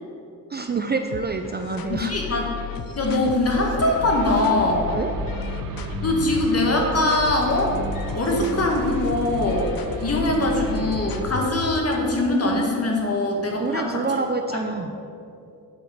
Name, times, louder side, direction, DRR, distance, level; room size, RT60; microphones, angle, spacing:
voice 1, 0.5-2.1 4.9-5.1 13.6-14.9, right 4 dB, 25° right, 5 dB, 0.5 m, -27 dB
sound 1, 1.1-11.9, left 7 dB, 65° left, 0.7 m, -34 dB
voice 2, 1.9-2.5 3.0-4.9 6.0-7.8 8.1-14.0 14.5-14.6, left 2 dB, 40° left, 0 dB, 1.8 m, -22 dB
sound 2, 3.8-11.2, right 4 dB, 60° right, 0.7 m, -34 dB
7.9 x 4.7 x 6.5 m, 2.6 s
cardioid pair, 70°, 37 cm